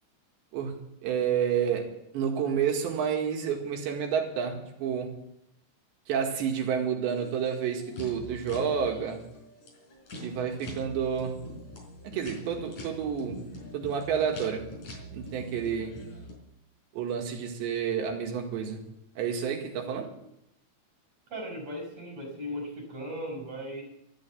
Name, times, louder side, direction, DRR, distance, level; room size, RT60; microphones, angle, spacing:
voice 1, 0.5-5.2 6.1-9.3 10.2-11.4 12.0-13.4 13.7-14.7 15.1-16.0 16.9-18.8 19.2-20.1, right 7 dB, 80° right, 4.2 m, -30 dB
sound 1, 7.1-16.3, equal, 45° left, 5.7 m, -44 dB
voice 2, 21.3-23.8, equal, 35° right, 6.4 m, -37 dB
13.5 x 13.0 x 7.4 m
omnidirectional pair, 5.1 m